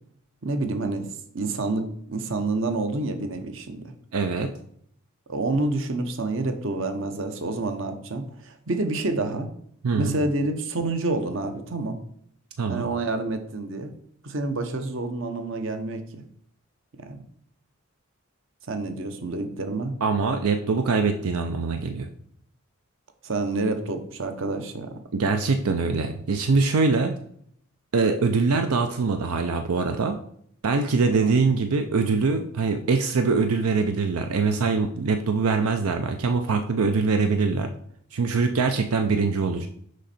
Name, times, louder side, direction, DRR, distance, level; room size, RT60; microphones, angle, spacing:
voice 1, 0.4-1.1 1.3-3.9 5.3-9.5 10.0-12.0 12.7-13.9 14.2-16.2 17.0-17.2 18.7-20.0 23.2-24.9 31.2-31.4, right 2 dB, 60° right, 7 dB, 0.8 m, -28 dB
voice 2, 4.1-4.5 9.8-10.2 12.6-12.9 20.0-22.1 25.1-27.2 27.9-30.2 30.6-37.7 38.1-39.7, right 4 dB, 85° right, 7 dB, 0.5 m, -23 dB
6.4 x 5.2 x 4.2 m, 0.68 s
head